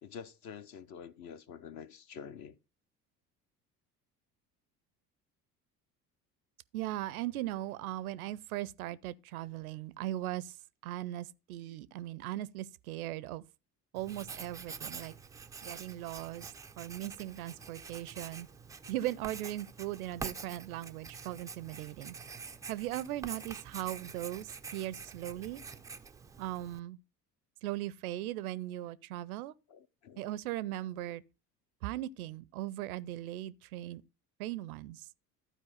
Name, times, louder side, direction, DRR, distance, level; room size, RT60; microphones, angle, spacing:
voice 1, 0.0-2.6 29.7-30.4, left 7 dB, 40° left, 0.8 m, -48 dB
voice 2, 6.7-10.6 10.8-13.4 13.9-15.1 15.6-18.5 18.9-22.2 22.7-25.6 26.4-27.0 27.6-29.5 30.2-31.2 31.8-34.0 34.4-35.1, right 14 dB, 65° right, 0.6 m, -38 dB
Writing, 14.0-26.8, right 5 dB, 10° right, 0.4 m, -46 dB
12.0 x 4.5 x 5.6 m
figure-of-eight pair, 60°, 47 cm